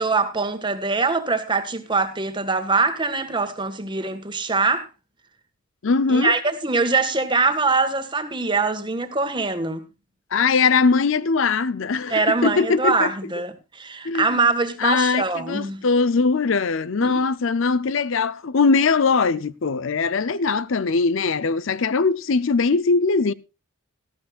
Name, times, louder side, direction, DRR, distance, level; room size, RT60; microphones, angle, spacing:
voice 1, 0.0-4.9 6.1-9.8 12.1-15.8 17.0-17.3, right 3 dB, 20° right, 1.6 m, -23 dB
voice 2, 5.8-6.3 10.3-13.1 14.0-14.4 14.8-23.3, left 4 dB, 60° left, 0.6 m, -21 dB
18.0 x 14.0 x 2.4 m
head